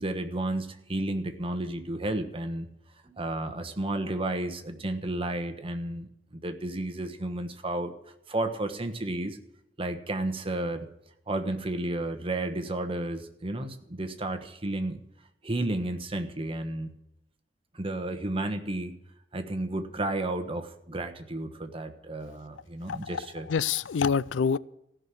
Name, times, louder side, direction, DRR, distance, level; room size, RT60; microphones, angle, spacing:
voice 1, 0.0-2.7 3.0-7.9 8.3-9.4 9.8-10.9 11.3-15.0 15.4-17.0 17.7-18.9 19.3-23.5, right 1 dB, 30° right, 1.3 m, -32 dB
voice 2, 22.9-24.6, left 6 dB, 90° left, 0.4 m, -27 dB
15.0 x 6.2 x 9.8 m
head